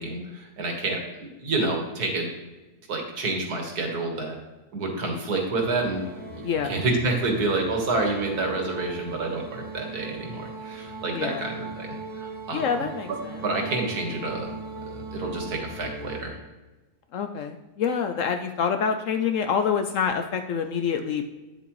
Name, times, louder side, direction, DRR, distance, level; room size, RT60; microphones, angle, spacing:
voice 1, 0.0-2.3 2.9-4.4 4.7-6.1 6.6-12.6 13.4-14.5 14.9-16.4, right 2 dB, 75° right, 1 dB, 2.0 m, -28 dB
sound 1, 5.6-16.2, right 3 dB, 5° right, 1.5 m, -39 dB
voice 2, 11.1-11.4 12.5-13.4 17.1-21.2, left 7 dB, 65° left, 7 dB, 0.8 m, -26 dB
9.3 x 7.7 x 3.1 m, 1.1 s
omnidirectional pair, 1.7 m